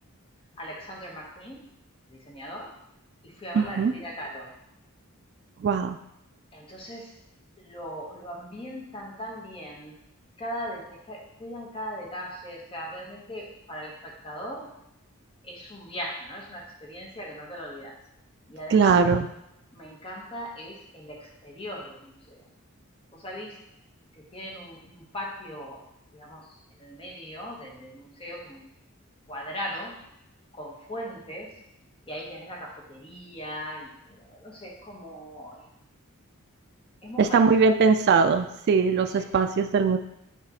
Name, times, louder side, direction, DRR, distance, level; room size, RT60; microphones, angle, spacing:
voice 1, 0.6-1.6 2.1-2.7 3.2-4.5 6.5-7.1 7.6-9.9 10.4-14.7 15.4-17.9 18.5-19.0 19.7-22.4 23.1-23.6 24.1-25.8 26.1-26.5 26.8-28.7 29.3-30.0 30.5-31.5 32.1-35.6 37.0-37.4, equal, 25° left, -1 dB, 1.2 m, -39 dB
voice 2, 3.5-3.9 5.6-6.0 18.7-19.3 37.2-40.0, right 5 dB, 50° right, 7 dB, 0.3 m, -21 dB
8.3 x 3.2 x 4.1 m, 0.83 s
head